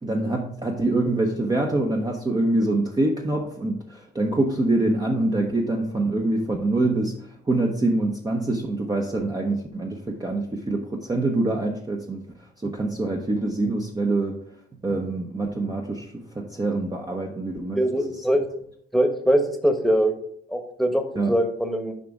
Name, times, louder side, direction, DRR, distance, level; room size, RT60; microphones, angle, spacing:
voice 1, 0.0-12.2 12.6-14.4 14.8-17.8 18.2-18.3 21.1-21.3, right 2 dB, 20° right, 1 dB, 0.8 m, -25 dB
voice 2, 17.8-18.4 18.9-20.1 20.5-22.0, equal, ahead, 6 dB, 1.2 m, -22 dB
7.4 x 4.9 x 3.6 m, 0.66 s
cardioid pair, 90°, 20 cm